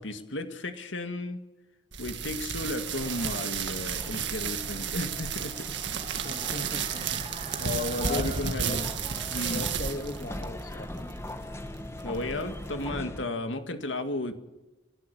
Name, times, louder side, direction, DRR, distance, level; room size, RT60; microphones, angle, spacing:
voice 1, 0.0-1.4 2.0-5.7 6.1-6.4 7.6-8.9 9.3-9.7 12.0-14.3, left 2 dB, 75° left, 7 dB, 2.0 m, -34 dB
sound 1, 1.9-12.9, right 7 dB, 65° right, 1.8 m, -33 dB
sound 2, 2.9-11.5, right 4 dB, 40° right, 3.2 m, -48 dB
sound 3, 3.0-13.3, left 1 dB, 15° left, 1.2 m, -41 dB
voice 2, 6.2-7.6 8.0-8.8 9.5-10.9, left 2 dB, 45° left, 6 dB, 1.8 m, -38 dB
29.5 x 13.0 x 6.8 m, 1.0 s
head